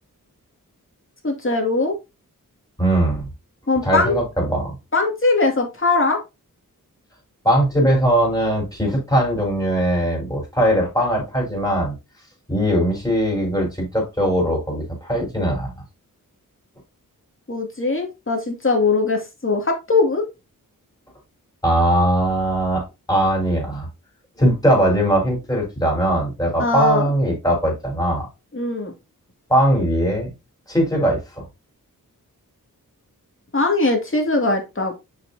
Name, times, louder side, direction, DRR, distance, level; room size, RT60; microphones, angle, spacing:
voice 1, 1.2-1.9 3.7-4.2 4.9-6.2 17.5-20.2 26.6-27.1 28.5-28.9 33.5-34.9, left 3 dB, 35° left, 2.4 m, -20 dB
voice 2, 2.8-3.3 3.8-4.7 7.4-11.9 12.5-15.7 21.6-23.9 24.4-28.3 29.5-30.3 30.7-31.4, right 1 dB, 10° left, 4.5 m, -20 dB
6.5 x 5.9 x 2.8 m
wide cardioid pair, 60°, 35 cm